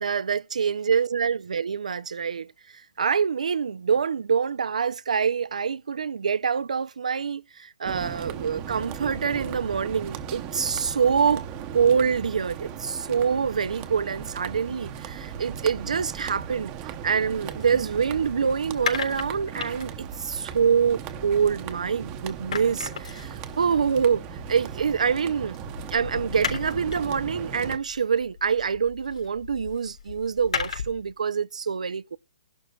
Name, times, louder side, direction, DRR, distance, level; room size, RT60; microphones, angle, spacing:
voice 1, 0.0-2.5 3.0-11.4 11.7-16.7 17.0-24.2 24.5-25.6 25.9-32.2, right 6 dB, 90° right, 0.5 m, -25 dB
sound 1, 7.8-27.8, right 8 dB, 20° right, 0.8 m, -37 dB
sound 2, 17.3-22.0 22.2-31.1, left 6 dB, 75° left, 3.7 m, -37 dB
23.5 x 11.5 x 2.4 m
hypercardioid pair, 170°, 4 cm